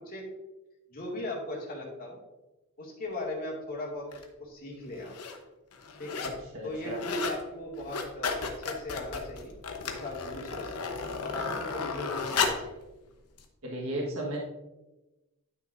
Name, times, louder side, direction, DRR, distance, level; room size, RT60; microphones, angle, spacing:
voice 1, 0.9-2.2 2.8-4.1 4.4-5.2 6.0-6.3 6.6-9.5 9.8-10.8 11.2-12.6, left 1 dB, 40° left, -3 dB, 2.2 m, -38 dB
sound 1, 4.1-4.2 4.9-5.4 5.7-6.4 6.7-7.4 7.7-12.7 13.4-13.5, left 5 dB, 90° left, 0.9 m, -33 dB
voice 2, 6.2-7.0 13.6-14.4, right 1 dB, 70° right, -1 dB, 1.5 m, -35 dB
10.5 x 6.0 x 2.6 m, 1.1 s
head